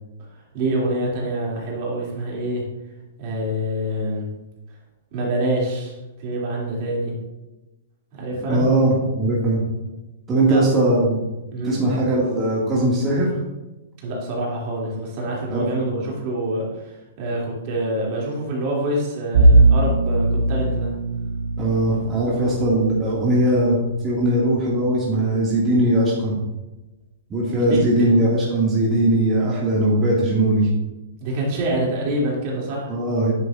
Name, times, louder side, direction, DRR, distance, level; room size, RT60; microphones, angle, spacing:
voice 1, 0.5-2.6 3.2-4.3 5.1-5.9 6.2-7.1 8.1-8.6 10.4-10.7 11.5-11.8 14.0-20.9 22.3-22.6 27.7-28.1 31.2-32.9, right 1 dB, 45° right, -4 dB, 3.0 m, -26 dB
voice 2, 8.5-9.6 10.3-11.2 11.6-13.3 15.5-15.6 15.9-16.0 21.6-23.8 24.0-26.3 27.3-30.7 32.9-33.3, right 1 dB, 20° right, -6 dB, 2.3 m, -19 dB
Bowed string instrument, 19.3-24.4, right 2 dB, 70° right, 1.4 m, -20 dB
9.6 x 7.6 x 2.6 m, 1.0 s
hypercardioid pair, 125°, 0 cm